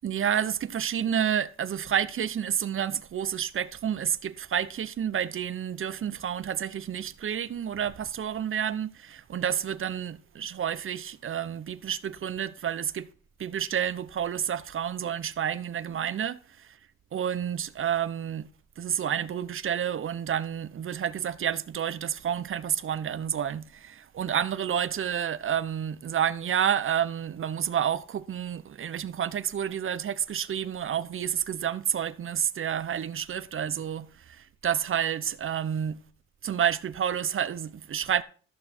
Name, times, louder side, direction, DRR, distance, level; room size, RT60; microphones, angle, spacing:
voice 1, 0.0-13.1 13.4-16.8 17.1-18.5 18.8-36.0 36.4-38.2, right 9 dB, 45° right, 0.7 m, -29 dB
14.0 x 6.2 x 4.4 m
cardioid pair, 90°, 30 cm